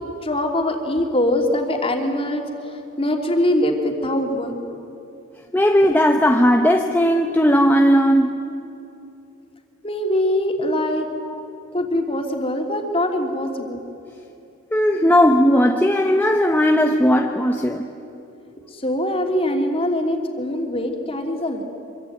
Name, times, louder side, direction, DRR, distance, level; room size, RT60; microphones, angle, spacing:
voice 1, 0.0-4.6 9.8-11.1 11.7-13.8 18.7-21.6, left 1 dB, 30° left, 3 dB, 3.2 m, -23 dB
voice 2, 5.5-8.4 11.3-11.4 14.7-17.9, equal, 10° left, 3 dB, 1.1 m, -17 dB
26.0 x 23.5 x 9.4 m, 2.7 s
head